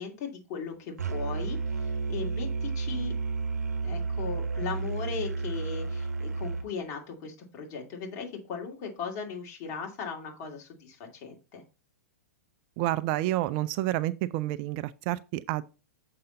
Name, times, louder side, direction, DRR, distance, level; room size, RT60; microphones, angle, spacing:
voice 1, 0.0-3.1 3.8-11.6, left 5 dB, 40° left, 2.4 m, -38 dB
Musical instrument, 1.0-6.7, right 4 dB, 90° right, 0.9 m, -31 dB
voice 2, 12.8-15.6, right 15 dB, 45° right, 0.5 m, -29 dB
6.8 x 5.5 x 3.8 m
hypercardioid pair, 115°, 9 cm